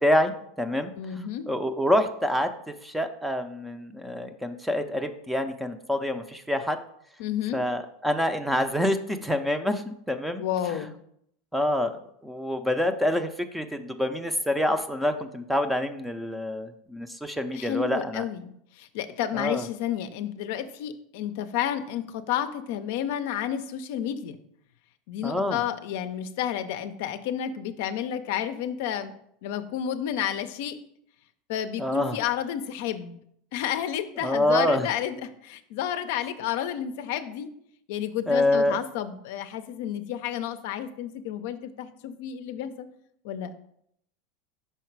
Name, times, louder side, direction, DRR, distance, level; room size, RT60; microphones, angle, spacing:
voice 1, 0.0-0.9 1.5-6.8 7.5-10.4 10.7-10.8 11.5-11.9 12.2-18.2 19.3-19.6 25.2-25.6 31.8-32.2 34.2-34.9 38.3-38.8, left 1 dB, 5° right, 9 dB, 0.5 m, -26 dB
voice 2, 1.0-1.5 7.2-7.6 10.4-11.0 17.5-24.4 25.1-29.1 29.4-30.8 31.5-33.2 33.5-37.5 37.9-42.9 43.2-43.5, left 10 dB, 70° left, 9 dB, 0.5 m, -31 dB
5.7 x 3.9 x 4.6 m, 0.71 s
supercardioid pair, 120°, 0 cm